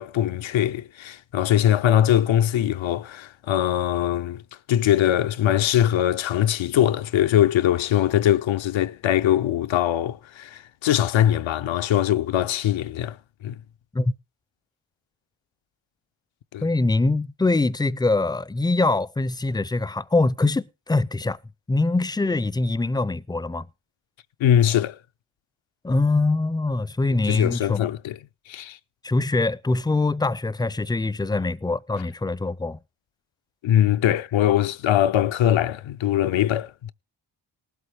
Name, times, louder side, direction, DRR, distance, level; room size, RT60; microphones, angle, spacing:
voice 1, 0.0-4.4 4.7-13.2 13.4-13.6 16.5-16.6 24.4-25.0 27.3-28.2 28.5-28.8 33.6-36.9, left 11 dB, 70° left, 0.6 m, -22 dB
voice 2, 16.6-21.4 21.7-23.7 25.8-27.9 29.0-32.8, left 2 dB, 10° left, 0.5 m, -23 dB
19.0 x 8.1 x 3.4 m
supercardioid pair, 40°, 48 cm